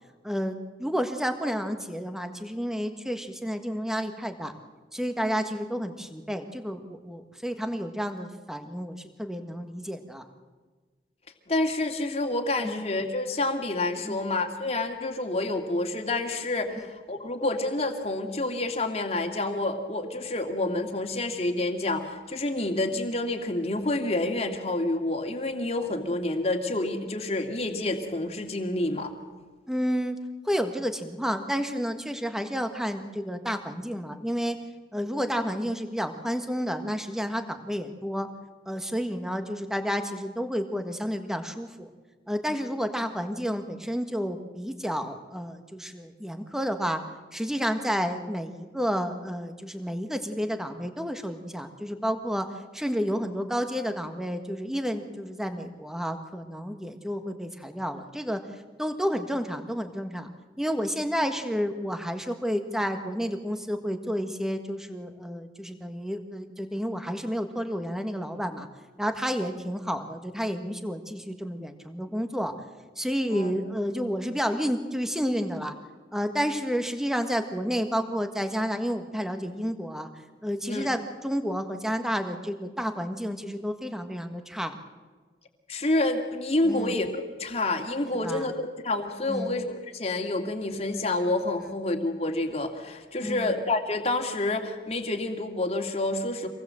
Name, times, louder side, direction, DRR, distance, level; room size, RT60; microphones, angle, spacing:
voice 1, 0.2-4.5 4.9-10.2 12.6-12.7 14.0-14.2 29.7-30.1 30.4-34.6 34.9-38.3 38.6-41.9 42.3-47.0 47.3-52.4 52.7-58.4 58.8-60.3 60.6-68.7 69.0-72.5 72.9-75.7 76.1-80.1 80.4-84.8 86.6-86.9 88.2-88.5 89.3-89.6 93.2-93.6, equal, 5° right, 7 dB, 1.5 m, -30 dB
voice 2, 11.5-29.1 73.3-73.5 80.7-80.9 85.7-89.7 89.9-96.5, left 2 dB, 35° left, 4 dB, 2.3 m, -28 dB
26.0 x 19.5 x 7.7 m, 1.4 s
head